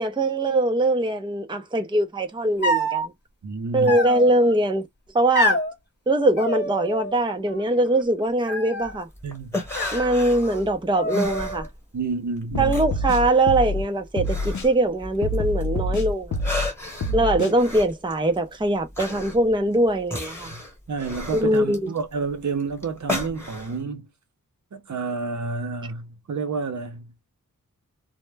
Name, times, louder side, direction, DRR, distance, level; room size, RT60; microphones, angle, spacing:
voice 1, 0.0-3.0 3.7-4.9 5.1-5.6 6.1-9.1 9.9-11.7 12.6-16.3 17.1-20.5 21.3-21.8, right 1 dB, 15° right, 0.5 m, -22 dB
sound 1, 2.6-3.1 3.9-4.5 5.3-5.7 6.4-7.2 7.5-8.0 8.5-9.0 9.7-10.6 10.9-11.7, equal, 30° left, 0.9 m, -27 dB
voice 2, 3.4-4.0 9.2-9.5 11.9-12.8 17.0-17.3 20.5-20.6 20.9-24.1 24.7-27.3, right 4 dB, 60° right, 0.7 m, -30 dB
sound 2, 8.8-12.1 12.4-15.7 16.1-23.8, left 2 dB, 10° left, 1.1 m, -34 dB
sound 3, 12.5-13.8 14.2-14.7 15.2-16.7 17.0-17.5, left 2 dB, 65° left, 0.6 m, -26 dB
2.1 x 2.1 x 3.2 m
wide cardioid pair, 60°, 32 cm